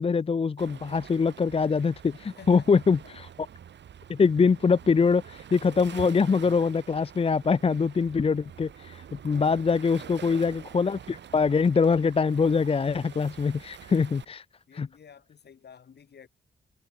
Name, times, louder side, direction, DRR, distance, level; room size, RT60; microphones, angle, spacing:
voice 1, 0.0-3.3 4.1-14.4 14.7-14.9, left 5 dB, 30° left, 0.5 m, -24 dB
Waves surf, 0.6-14.2, right 9 dB, 70° right, 1.6 m, -46 dB
voice 2, 2.2-3.2 4.8-4.9 8.4-8.6 9.8-10.4 14.7-16.3, left 7 dB, 65° left, 3.4 m, -51 dB
cardioid pair, 75°, 19 cm